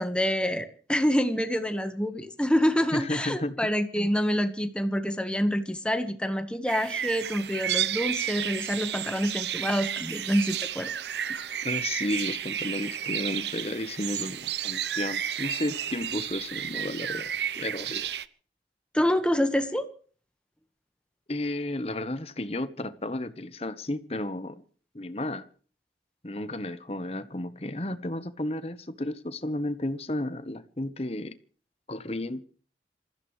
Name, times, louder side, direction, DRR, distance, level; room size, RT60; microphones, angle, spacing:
voice 1, 0.0-10.9 11.3-11.5 18.9-19.9, equal, 5° left, 1.5 m, -27 dB
voice 2, 2.9-3.6 4.0-4.1 11.6-17.3 17.5-18.1 21.3-24.6 24.9-25.5 26.2-31.4 31.9-32.5, left 1 dB, 35° left, 1.1 m, -33 dB
sound 1, 6.7-18.2, right 10 dB, 75° right, 0.7 m, -32 dB
27.0 x 15.0 x 3.3 m
head